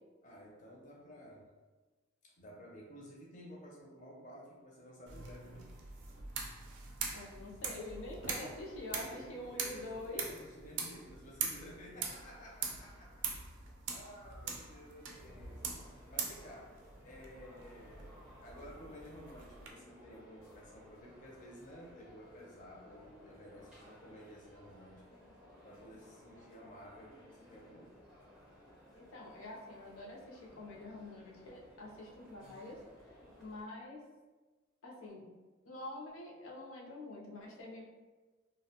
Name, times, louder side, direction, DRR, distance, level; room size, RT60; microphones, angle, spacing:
voice 1, 0.2-1.5 2.2-5.7 9.0-13.3 13.6-15.6 16.1-18.2 18.4-25.2 25.6-28.0, equal, 40° left, -3 dB, 0.5 m, -53 dB
sound 1, 5.1-19.7, right 5 dB, 65° right, 0.4 m, -43 dB
voice 2, 7.1-10.2 28.9-32.8 33.4-34.0 34.8-35.2 35.6-37.8, left 1 dB, 80° left, -2 dB, 0.5 m, -46 dB
sound 2, 15.1-33.6, left 1 dB, 5° right, 0.6 m, -59 dB
2.5 x 2.1 x 2.8 m, 1.3 s
head